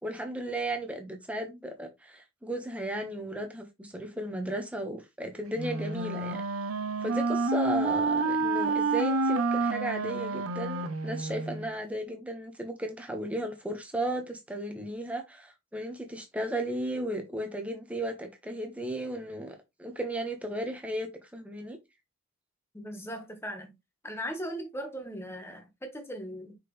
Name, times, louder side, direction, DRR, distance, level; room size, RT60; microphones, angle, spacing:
voice 1, 0.0-6.4 7.0-21.8, right 1 dB, 5° right, 1.2 m, -35 dB
Wind instrument woodwind instrument, 5.6-11.7, right 3 dB, 85° right, 0.7 m, -29 dB
voice 2, 22.7-23.7 24.0-26.6, equal, 10° left, 1.4 m, -38 dB
5.9 x 5.0 x 3.2 m
head